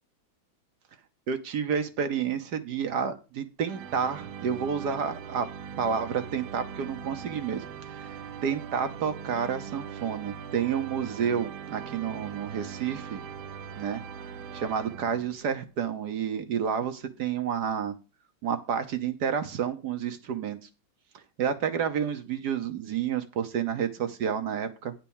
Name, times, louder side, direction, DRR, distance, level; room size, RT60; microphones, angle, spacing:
voice 1, 1.3-5.5 5.8-7.6 7.9-8.2 8.4-13.2 13.8-14.0 14.5-17.9 18.4-20.6 21.4-24.9, right 7 dB, 60° right, 8 dB, 1.3 m, -30 dB
sound 1, 3.6-15.6, right 7 dB, 85° right, 1.5 m, -41 dB
9.5 x 4.6 x 7.1 m, 0.31 s
omnidirectional pair, 2.2 m